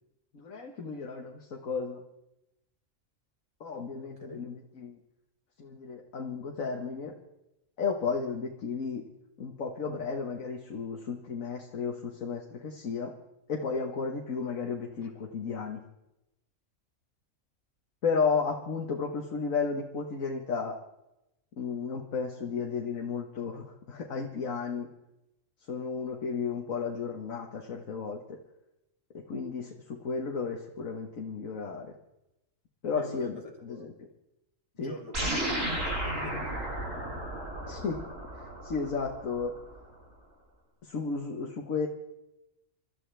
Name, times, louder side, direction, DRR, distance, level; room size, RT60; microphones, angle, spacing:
voice 1, 0.3-2.0 3.6-5.0 5.6-7.1 7.8-9.1 9.4-13.2 13.5-15.8 18.0-20.8 21.6-24.9 25.7-28.4 29.1-31.9 32.8-33.9 34.8-35.0 37.7-38.0 38.3-39.6 40.8-41.9, left 5 dB, 80° left, 1 dB, 1.8 m, -33 dB
voice 2, 33.0-33.3 33.7-33.9 34.8-36.6, left 1 dB, 25° left, -1 dB, 3.0 m, -44 dB
sound 1, 35.1-39.8, right 1 dB, 70° right, 8.2 m, -34 dB
28.0 x 13.5 x 3.4 m, 0.89 s
omnidirectional pair, 1.4 m